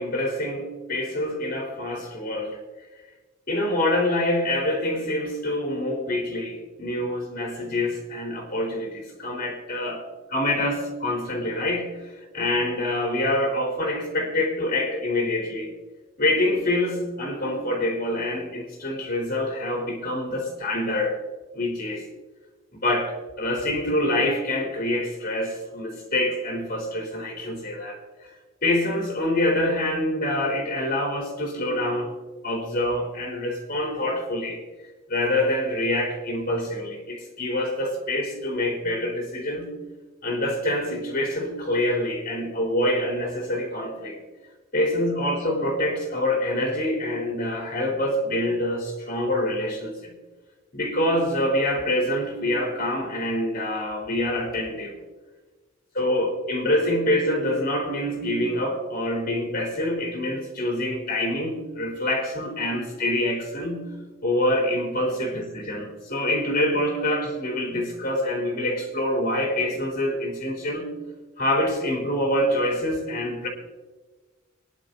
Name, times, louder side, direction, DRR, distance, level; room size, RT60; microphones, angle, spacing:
voice 1, 0.0-2.6 3.5-10.0 10.3-11.9 12.3-15.7 16.2-21.2 21.5-22.0 22.7-28.0 28.6-32.1 32.4-34.6 35.1-39.7 40.2-44.2 44.7-50.1 50.7-54.9 55.9-63.9 64.2-70.9 71.4-73.5, left 1 dB, 50° left, -2 dB, 3.4 m, -26 dB
26.0 x 11.0 x 2.7 m, 1.3 s
head